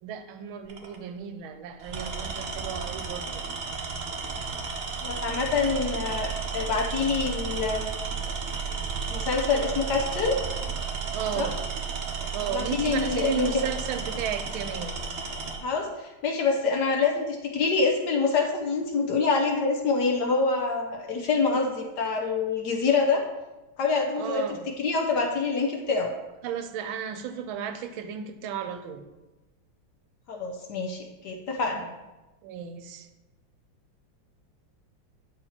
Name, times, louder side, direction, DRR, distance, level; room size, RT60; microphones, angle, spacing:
voice 1, 0.0-3.4 11.1-11.6 12.3-15.0 24.1-24.7 26.4-29.1 31.8-31.9 32.4-33.1, right 8 dB, 80° right, 9 dB, 1.4 m, -34 dB
Tools, 0.7-1.0 1.8-15.6, right 5 dB, 60° right, 0.7 m, -33 dB
voice 2, 5.0-7.9 9.1-10.3 11.4-11.5 12.5-13.5 15.6-23.2 23.8-24.4 24.8-26.1 30.3-31.9, left 4 dB, 65° left, 1 dB, 1.2 m, -26 dB
8.9 x 5.6 x 2.8 m, 1.1 s
omnidirectional pair, 2.3 m